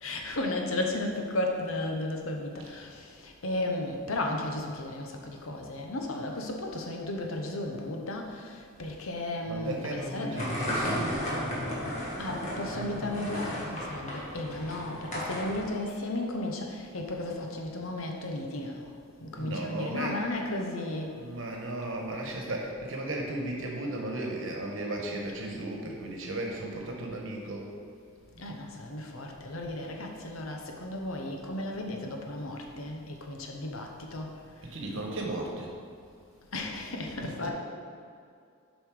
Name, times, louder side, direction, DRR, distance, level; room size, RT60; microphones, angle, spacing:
voice 1, 0.0-10.4 12.2-18.9 19.2-21.2 28.4-34.3 36.5-37.5, left 1 dB, 65° left, 2 dB, 0.9 m, -34 dB
voice 2, 9.5-11.2 19.3-20.2 21.1-27.7 28.3-28.4 34.6-35.7 37.2-37.5, right 1 dB, 60° right, 0 dB, 1.2 m, -35 dB
sound 1, 10.3-15.7, equal, 30° left, 1.5 m, -34 dB
7.3 x 5.2 x 4.9 m, 2.3 s
head